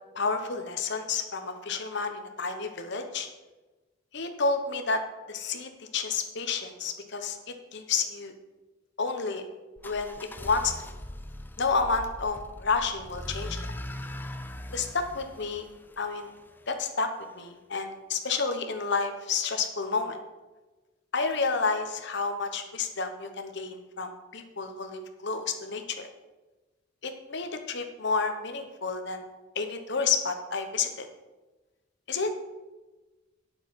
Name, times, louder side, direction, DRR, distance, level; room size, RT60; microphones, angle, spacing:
voice 1, 0.1-3.3 4.1-5.0 5.3-7.4 7.7-8.3 9.0-9.4 9.8-10.1 10.4-10.9 11.6-13.7 14.7-15.7 16.0-16.3 16.7-17.1 17.3-20.2 21.1-26.1 27.0-29.2 29.5-31.1 32.1-32.4, left 4 dB, 55° left, 6 dB, 1.0 m, -30 dB
sound 1, 9.8-16.7, left 1 dB, 10° left, 0.4 m, -40 dB
9.0 x 6.5 x 5.7 m, 1.2 s
head